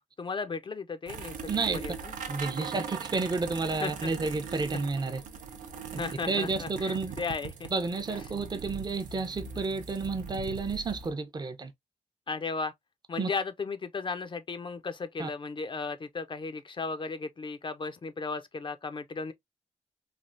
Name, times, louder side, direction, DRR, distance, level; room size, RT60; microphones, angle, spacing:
voice 1, 0.0-2.1 3.8-4.1 6.0-7.7 12.3-12.7 13.1-19.3, left 4 dB, 40° left, 0.5 m, -35 dB
sound 1, 1.1-11.1, right 6 dB, 85° right, 0.6 m, -40 dB
voice 2, 1.5-1.8 2.3-5.2 5.9-6.0 6.3-7.1 7.7-11.7 13.2-13.3 15.2-15.3, right 3 dB, 35° right, 0.6 m, -31 dB
3.3 x 2.3 x 2.5 m
cardioid pair, 60°, 13 cm